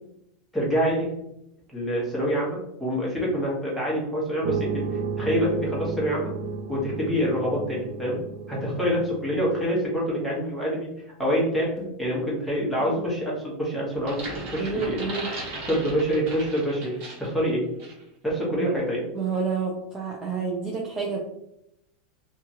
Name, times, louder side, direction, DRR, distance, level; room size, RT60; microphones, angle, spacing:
voice 1, 0.5-1.1 1.7-6.3 6.7-8.2 8.5-10.9 11.2-14.2 14.5-15.0 15.7-16.9 17.2-17.6 18.2-19.0, equal, ahead, -6 dB, 1.1 m, -26 dB
sound 1, 4.4-9.7, right 5 dB, 75° right, 0.7 m, -33 dB
sound 2, 13.9-17.4 17.8-18.0, right 2 dB, 50° right, 1.0 m, -37 dB
voice 2, 14.6-15.3 18.6-18.8 19.1-21.2, right 5 dB, 20° right, -2 dB, 0.4 m, -29 dB
2.8 x 2.4 x 2.8 m, 0.81 s
supercardioid pair, 145°, 4 cm